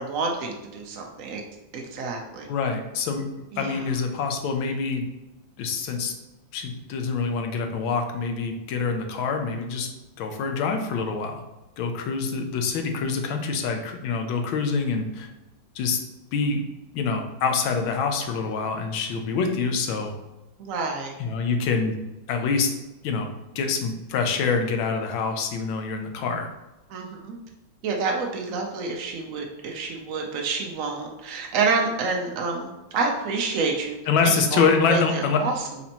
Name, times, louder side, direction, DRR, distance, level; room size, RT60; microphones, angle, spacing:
voice 1, 0.0-1.4 1.7-2.5 3.5-3.9 20.6-21.2 26.9-27.4 27.8-35.7, right 4 dB, 80° right, 1 dB, 0.7 m, -28 dB
voice 2, 2.5-3.3 3.6-5.0 5.6-6.1 6.5-9.9 10.2-11.4 11.8-15.3 15.7-16.0 16.3-16.6 16.9-20.1 21.2-22.0 22.3-22.7 23.0-23.3 23.5-26.5 34.1-35.4, left 5 dB, 90° left, 5 dB, 1.5 m, -25 dB
4.2 x 4.1 x 2.8 m, 1.0 s
omnidirectional pair, 2.1 m